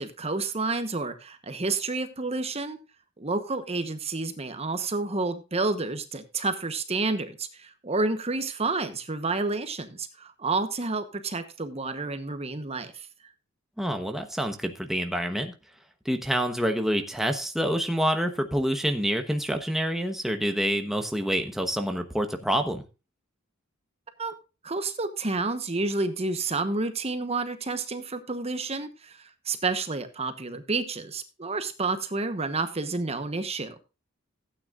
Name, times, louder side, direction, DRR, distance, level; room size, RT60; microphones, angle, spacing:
voice 1, 0.0-2.8 3.2-13.1 24.2-24.3 24.6-33.7, right 3 dB, 30° right, 9 dB, 1.1 m, -30 dB
voice 2, 13.8-15.5 16.0-22.8, equal, ahead, 5 dB, 1.0 m, -27 dB
15.5 x 9.2 x 2.5 m, 0.30 s
head